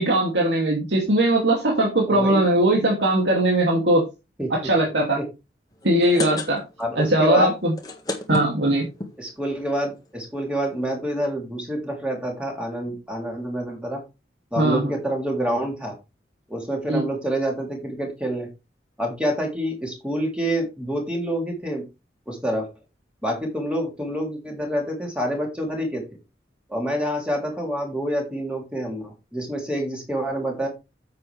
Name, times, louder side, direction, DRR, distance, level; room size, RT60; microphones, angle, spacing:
voice 1, 0.0-4.0 4.5-5.2 5.8-6.6 6.9-7.7 8.3-8.8 14.6-14.9 16.9-17.0, right 1 dB, 75° right, -1 dB, 2.6 m, -20 dB
voice 2, 2.1-2.5 4.4-4.5 5.2-5.3 6.8-7.5 9.2-14.0 14.5-15.9 16.5-18.5 19.0-21.8 22.3-22.7 23.2-26.0 26.7-30.7, equal, 5° right, 0 dB, 3.0 m, -27 dB
sound 1, 5.8-6.9 7.2-7.3 7.6-9.1 9.8-9.9 10.1-10.2 10.4-10.7, left 2 dB, 20° left, 1.6 m, -30 dB
9.7 x 7.6 x 3.4 m, 0.26 s
head